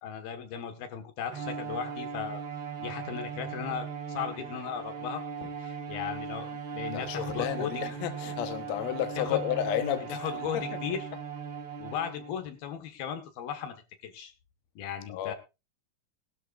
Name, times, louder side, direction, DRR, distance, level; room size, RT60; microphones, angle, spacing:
voice 1, 0.0-2.4 2.8-7.9 9.2-9.4 10.1-11.0 11.8-13.8 14.0-14.3 14.8-15.4, left 8 dB, 85° left, 3.5 m, -36 dB
Bowed string instrument, 1.3-12.5, right 6 dB, 45° right, 1.7 m, -38 dB
voice 2, 6.9-10.6 15.1-15.3, left 11 dB, 65° left, 2.0 m, -32 dB
18.5 x 12.5 x 2.5 m
omnidirectional pair, 4.2 m